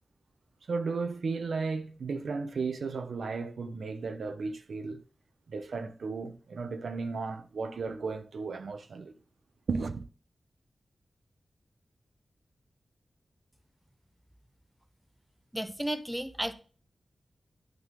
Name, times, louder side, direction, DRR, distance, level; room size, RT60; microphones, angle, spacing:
voice 1, 0.7-5.0 5.5-9.1 9.7-10.1, right 4 dB, 80° right, 0.8 m, -34 dB
voice 2, 15.5-16.5, right 1 dB, 5° right, 0.7 m, -33 dB
11.0 x 3.8 x 3.8 m
wide cardioid pair, 90°, 0 cm